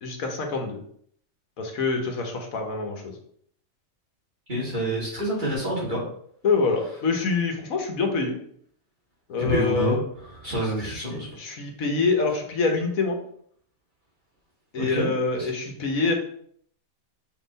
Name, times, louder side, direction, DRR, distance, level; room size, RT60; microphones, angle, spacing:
voice 1, 0.0-0.8 1.6-3.2 6.4-8.4 9.3-10.0 10.8-13.2 14.7-16.1, left 4 dB, 90° left, 3 dB, 1.6 m, -26 dB
voice 2, 4.5-6.0 9.4-10.0 10.4-11.3 14.8-15.5, right 1 dB, 35° right, -6 dB, 2.8 m, -27 dB
6.8 x 3.9 x 4.1 m, 0.62 s
omnidirectional pair, 1.4 m